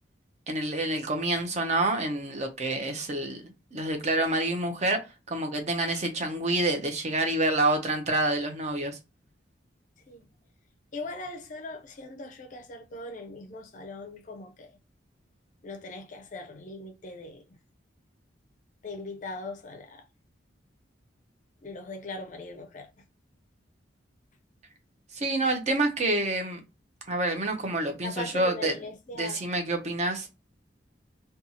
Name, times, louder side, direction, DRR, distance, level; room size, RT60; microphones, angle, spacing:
voice 1, 0.5-5.0 5.3-9.0 25.1-26.6 27.1-28.7 29.2-30.3, right 2 dB, 35° right, 0.5 m, -27 dB
voice 2, 10.9-14.8 15.6-17.4 18.8-20.1 21.6-22.9 28.0-29.5, left 2 dB, 40° left, 0.4 m, -40 dB
2.7 x 2.3 x 2.7 m
head